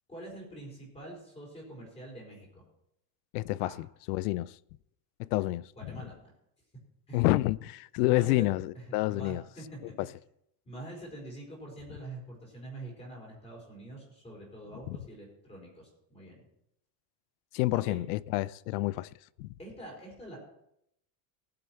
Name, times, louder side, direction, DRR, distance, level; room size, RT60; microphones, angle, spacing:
voice 1, 0.1-2.6 3.6-3.8 5.8-6.2 7.1-7.2 8.0-8.5 8.7-10.1 10.6-16.4 17.7-18.0 19.6-20.4, right 1 dB, 10° left, 4.5 m, -45 dB
voice 2, 3.3-4.5 5.2-6.0 7.1-9.4 10.0-10.1 14.9-15.0 17.5-19.1 19.4-19.5, left 18 dB, 65° left, 0.6 m, -29 dB
18.5 x 7.9 x 4.4 m
cardioid pair, 170°, 49 cm